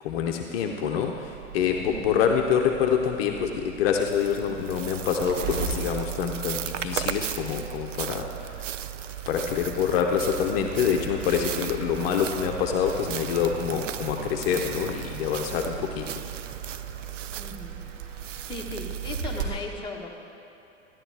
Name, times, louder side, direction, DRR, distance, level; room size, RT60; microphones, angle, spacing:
voice 1, 0.0-8.3 9.3-16.1, left 7 dB, 50° left, 3 dB, 0.8 m, -26 dB
sound 1, 0.9-19.6, right 7 dB, 60° right, 1.7 m, -38 dB
voice 2, 1.8-2.2 15.8-15.9 17.3-17.8 18.1-20.2, left 3 dB, 10° left, -1 dB, 1.2 m, -38 dB
sound 2, 4.0-19.4, right 10 dB, 80° right, 0.5 m, -37 dB
14.5 x 10.5 x 3.4 m, 2.7 s
figure-of-eight pair, 90°, 37 cm